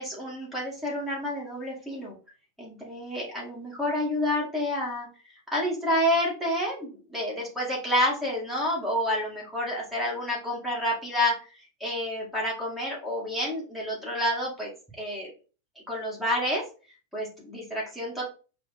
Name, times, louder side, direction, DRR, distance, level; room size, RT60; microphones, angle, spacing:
voice 1, 0.0-2.2 2.6-5.1 5.5-11.3 11.8-15.3 15.9-16.6 17.1-18.2, left 1 dB, 5° right, -4 dB, 2.2 m, -29 dB
4.7 x 2.4 x 4.1 m, 0.35 s
figure-of-eight pair, 90°, 0 cm